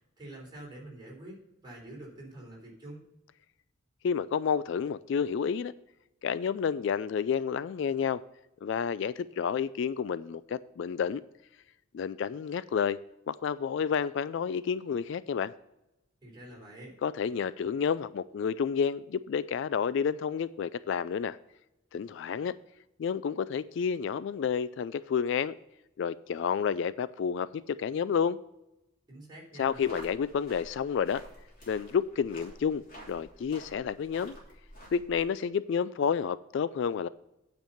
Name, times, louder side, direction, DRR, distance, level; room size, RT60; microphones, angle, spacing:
voice 1, 0.0-3.0 16.2-17.0 29.1-29.8, right 1 dB, 20° right, -4 dB, 3.7 m, -47 dB
voice 2, 4.0-5.7 6.2-8.2 8.6-11.2 11.9-13.0 13.3-15.5 17.0-21.4 21.9-22.5 23.0-25.5 26.0-28.4 29.6-31.2 31.7-34.4 34.9-37.1, left 7 dB, 60° left, 16 dB, 0.3 m, -30 dB
sound 1, 29.6-35.2, equal, 40° left, 3.1 m, -50 dB
9.0 x 5.3 x 7.1 m, 0.90 s
head